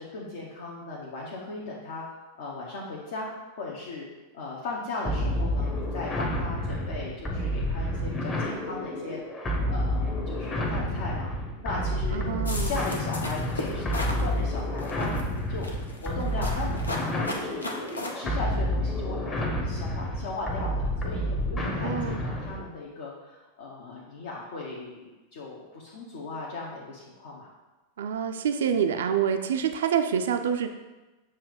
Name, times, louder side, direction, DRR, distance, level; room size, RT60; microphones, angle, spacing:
voice 1, 0.0-2.0 2.4-3.3 3.6-4.1 4.3-9.2 9.7-11.3 11.6-12.3 12.6-15.1 15.5-27.5, left 3 dB, 55° left, -4 dB, 1.0 m, -37 dB
sound 1, 5.0-22.7, left 1 dB, 25° left, 1.0 m, -29 dB
voice 2, 12.1-12.8 21.6-22.2 28.0-30.7, right 8 dB, 60° right, 7 dB, 0.4 m, -27 dB
sound 2, 12.5-14.2 14.8-15.2 15.6-18.1, left 1 dB, 80° left, 0.8 m, -35 dB
7.3 x 2.8 x 5.0 m, 1.1 s
figure-of-eight pair, 90°, 0 cm